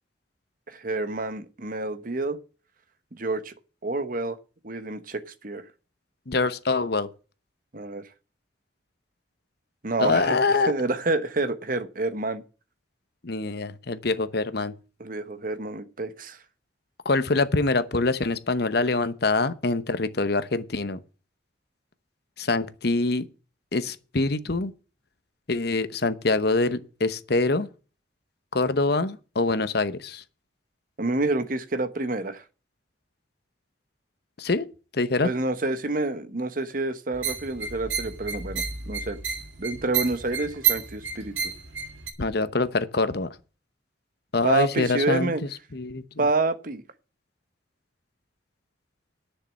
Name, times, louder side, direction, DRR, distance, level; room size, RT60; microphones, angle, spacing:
voice 1, 0.7-2.4 3.1-3.5 3.8-4.4 4.6-5.6 7.7-8.1 9.8-12.4 15.0-16.4 31.0-32.4 35.2-39.2 39.6-41.5 44.4-45.4 46.2-46.8, right 2 dB, 50° right, 1.1 m, -28 dB
voice 2, 6.3-7.1 10.0-10.7 13.2-14.7 17.0-21.0 22.4-23.2 23.7-24.7 25.5-27.7 28.5-30.2 34.4-34.7 34.9-35.3 42.2-43.3 44.3-45.3 45.7-46.0, left 3 dB, 60° left, 1.0 m, -25 dB
sound 1, 37.1-42.1, right 7 dB, 85° right, 2.1 m, -30 dB
10.5 x 6.6 x 7.4 m
head